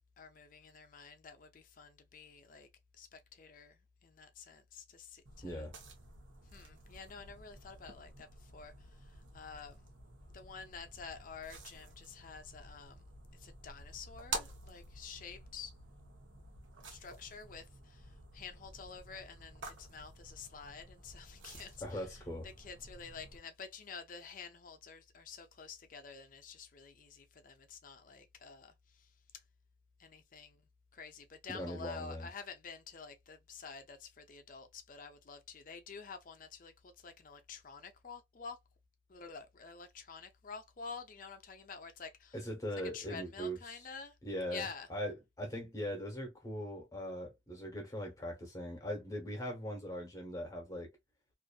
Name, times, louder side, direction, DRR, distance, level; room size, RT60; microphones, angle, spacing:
voice 1, 0.0-2.7 2.9-5.7 6.5-9.8 10.3-13.0 13.3-15.7 16.9-29.1 30.0-30.6 30.9-38.6 39.1-42.4 42.9-44.2 44.5-44.9, left 5 dB, 45° left, 0.5 m, -49 dB
sound 1, 5.3-23.4, right 3 dB, 75° right, 0.8 m, -50 dB
voice 2, 5.4-5.7 21.8-22.5 31.5-32.3 42.3-43.8 44.2-50.9, equal, 15° left, 0.9 m, -40 dB
2.5 x 2.5 x 2.3 m
head